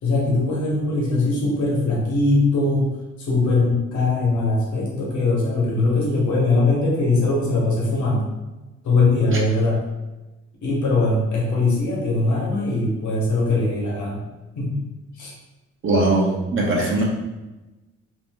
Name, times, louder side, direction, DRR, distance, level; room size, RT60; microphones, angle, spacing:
voice 1, 0.0-2.9 3.2-8.3 8.8-9.8 10.6-14.2 14.6-14.8 15.1-15.3, left 2 dB, 70° left, -4 dB, 1.1 m, -21 dB
voice 2, 15.8-17.0, right 2 dB, 40° right, -2 dB, 0.6 m, -20 dB
2.7 x 2.1 x 3.4 m, 1.1 s
cardioid pair, 90°, 30 cm